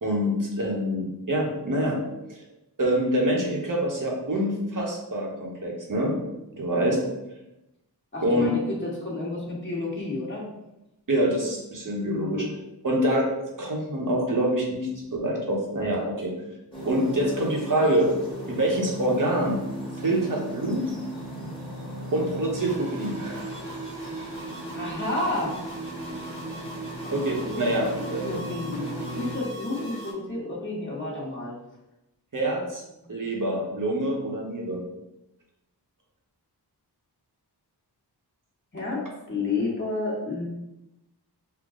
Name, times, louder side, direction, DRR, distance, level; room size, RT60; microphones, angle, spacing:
voice 1, 0.0-2.0 2.3-2.4 2.8-6.1 6.5-7.0 8.2-8.5 11.1-12.5 12.8-13.3 13.6-16.3 16.8-18.1 18.5-19.6 20.0-20.9 22.1-23.5 27.1-28.3 32.3-32.8 33.1-34.8, right 1 dB, 50° right, -1 dB, 1.1 m, -26 dB
voice 2, 6.7-7.1 8.1-10.5 11.8-12.5 24.7-25.6 27.0-27.6 27.9-28.8 29.2-31.5 33.0-33.1 38.7-40.5, left 2 dB, 30° left, -5 dB, 1.4 m, -31 dB
sound 1, 16.7-29.4, equal, 10° left, 1.4 m, -37 dB
sound 2, 22.6-30.1, right 3 dB, 80° right, 1.5 m, -38 dB
5.8 x 2.3 x 3.7 m, 0.91 s
wide cardioid pair, 80°, 41 cm